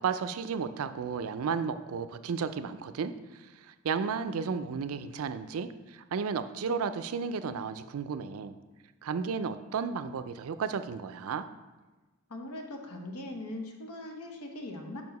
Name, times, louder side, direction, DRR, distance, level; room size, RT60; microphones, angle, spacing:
voice 1, 0.0-3.1 3.6-8.6 9.0-11.5, right 6 dB, 70° right, 11 dB, 0.4 m, -33 dB
voice 2, 12.3-15.0, left 1 dB, 85° left, 3 dB, 1.0 m, -40 dB
5.5 x 4.7 x 5.3 m, 1.2 s
head